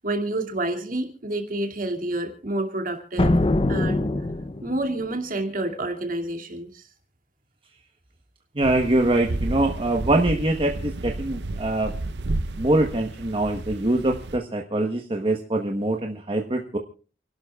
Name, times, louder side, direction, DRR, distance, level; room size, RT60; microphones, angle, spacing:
voice 1, 0.0-3.4 3.7-4.1 4.6-6.9, right 2 dB, 50° right, 3 dB, 2.5 m, -28 dB
sound 1, 3.2-4.9, left 2 dB, 30° left, 0.6 m, -23 dB
voice 2, 8.5-11.9 12.6-16.8, right 2 dB, 30° right, 2 dB, 1.2 m, -23 dB
sound 2, 8.6-14.4, right 2 dB, 75° right, 0.7 m, -32 dB
29.5 x 12.0 x 2.4 m, 0.37 s
head